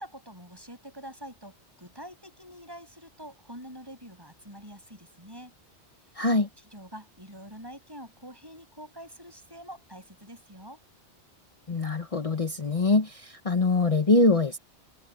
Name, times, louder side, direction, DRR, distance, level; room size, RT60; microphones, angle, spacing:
voice 1, 0.0-5.5 6.6-10.8, equal, 20° right, 7.1 m, -45 dB
voice 2, 6.1-6.5 11.7-14.6, left 3 dB, 30° left, 1.2 m, -23 dB
omnidirectional pair, 1.2 m